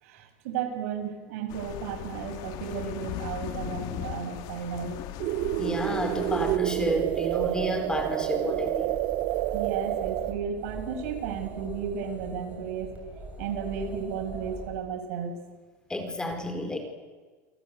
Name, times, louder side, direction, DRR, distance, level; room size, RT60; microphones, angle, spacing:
voice 1, 0.0-5.0 9.5-12.9 13.4-15.3, right 7 dB, 75° right, 6 dB, 7.0 m, -34 dB
sound 1, 1.5-6.6, left 13 dB, 55° left, 2.2 m, -38 dB
sound 2, 5.2-10.3, right 16 dB, 60° right, 1.3 m, -28 dB
voice 2, 5.6-9.0 15.9-16.8, left 1 dB, 10° left, 6 dB, 5.0 m, -31 dB
sound 3, 5.7-14.8, right 3 dB, 20° right, 8.0 m, -41 dB
29.5 x 23.0 x 8.5 m, 1.4 s
supercardioid pair, 130°, 8 cm